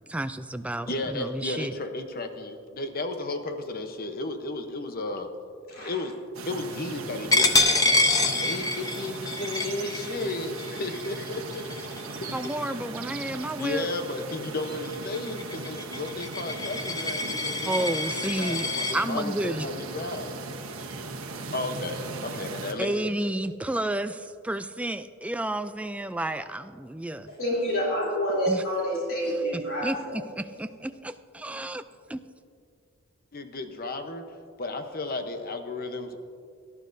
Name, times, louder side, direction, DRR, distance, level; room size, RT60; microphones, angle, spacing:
voice 1, 0.0-1.7 12.3-13.9 17.7-19.7 22.8-27.4 28.5-28.6 29.5-31.8 32.1-32.2, right 1 dB, 5° right, 10 dB, 0.3 m, -31 dB
voice 2, 0.9-5.3 5.8-6.2 6.4-7.8 8.2-11.7 13.5-20.3 21.5-23.1 33.3-34.2 34.6-36.2, left 2 dB, 45° left, 7 dB, 0.9 m, -34 dB
sound 1, 6.3-22.7, right 3 dB, 75° right, 1.2 m, -38 dB
Coin (dropping), 7.3-12.7 13.2-13.4 13.8-18.9, left 2 dB, 20° left, 0.7 m, -27 dB
voice 3, 27.4-30.1, equal, 75° left, -6 dB, 3.2 m, -27 dB
18.0 x 12.0 x 2.7 m, 2.3 s
head